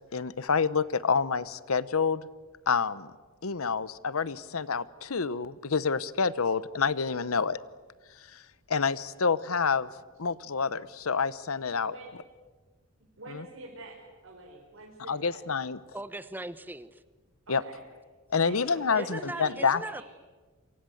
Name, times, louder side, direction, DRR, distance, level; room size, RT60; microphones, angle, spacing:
voice 1, 0.1-2.3 2.7-3.1 3.4-7.6 8.7-9.9 10.2-11.9 13.3-13.4 15.1-15.8 17.5-17.6 18.3-20.0, left 5 dB, 85° left, 17 dB, 0.9 m, -28 dB
voice 2, 13.2-13.9 14.2-15.4 17.5-17.8 18.4-20.0, right 2 dB, 70° right, -2 dB, 4.9 m, -46 dB
voice 3, 15.9-17.0 18.9-20.0, right 1 dB, 10° right, 14 dB, 0.9 m, -39 dB
27.0 x 24.5 x 7.9 m, 1.4 s
head